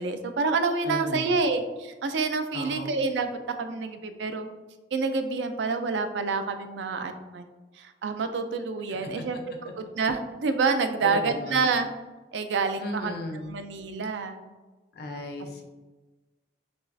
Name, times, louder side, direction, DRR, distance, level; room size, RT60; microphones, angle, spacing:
voice 1, 0.0-3.3 3.6-4.5 4.9-7.5 7.8-11.9 12.3-14.4, right 4 dB, 80° right, 8 dB, 0.4 m, -28 dB
voice 2, 0.8-1.3 2.5-2.9 9.6-9.7 11.0-11.6 12.8-13.5 14.9-15.6, left 2 dB, 60° left, 3 dB, 0.6 m, -35 dB
6.1 x 2.3 x 2.5 m, 1.2 s
head